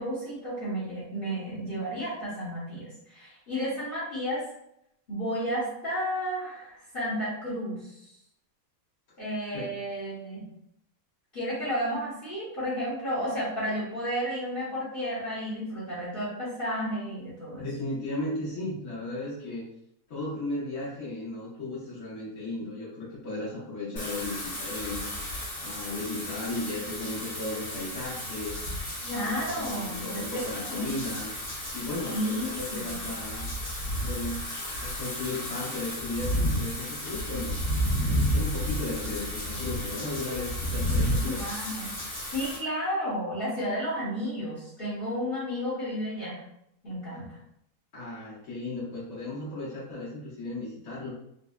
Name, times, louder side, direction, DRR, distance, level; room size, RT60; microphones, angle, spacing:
voice 1, 0.0-4.4 5.1-8.1 9.2-10.5 11.3-17.6 29.0-31.0 32.1-33.0 41.0-41.9 42.3-46.4 46.8-47.4, equal, 45° left, -9 dB, 1.1 m, -32 dB
voice 2, 17.6-19.7 20.1-25.1 25.6-28.6 29.2-31.3 31.7-33.5 34.0-34.5 34.8-37.6 38.0-41.4 47.9-51.2, left 2 dB, 80° left, -10 dB, 1.7 m, -35 dB
Wind / Rain, 24.0-42.6, equal, 65° left, 1.7 m, -32 dB
4.1 x 2.1 x 2.3 m, 0.76 s
omnidirectional pair, 1.5 m